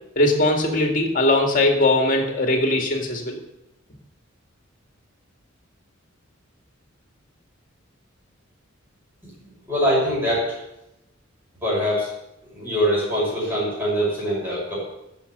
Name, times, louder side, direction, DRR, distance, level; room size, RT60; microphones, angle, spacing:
voice 1, 0.2-3.4, left 2 dB, 40° left, 3 dB, 2.2 m, -20 dB
voice 2, 9.7-10.6 11.6-12.1 12.5-14.8, equal, 10° right, -7 dB, 6.2 m, -23 dB
12.0 x 6.8 x 8.2 m, 0.87 s
head